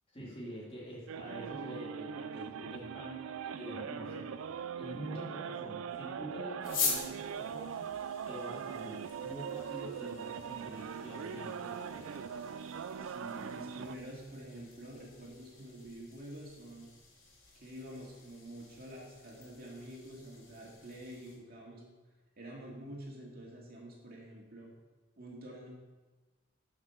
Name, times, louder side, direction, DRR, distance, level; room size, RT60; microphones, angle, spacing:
voice 1, 0.1-7.8 8.3-12.1, right 1 dB, 30° left, -5 dB, 2.9 m, -46 dB
sound 1, 1.1-14.0, right 7 dB, 85° right, 0.4 m, -41 dB
sound 2, 6.6-21.3, left 5 dB, 70° left, 3.2 m, -44 dB
voice 2, 13.0-16.9 17.5-21.8 22.4-24.7 25.2-25.7, right 1 dB, 50° right, -3 dB, 2.3 m, -48 dB
13.0 x 6.0 x 4.5 m, 1.2 s
head